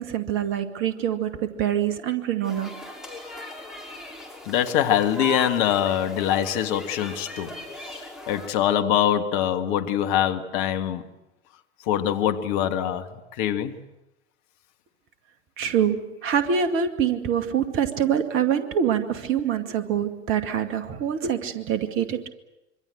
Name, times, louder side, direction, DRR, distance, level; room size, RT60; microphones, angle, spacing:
voice 1, 0.0-2.7 15.6-22.3, right 8 dB, 35° right, 2.2 m, -25 dB
sound 1, 2.4-8.5, equal, ahead, 5.7 m, -38 dB
voice 2, 4.5-11.1 11.8-13.8, left 10 dB, 45° left, 1.8 m, -24 dB
26.0 x 24.5 x 7.8 m
figure-of-eight pair, 90°, 35 cm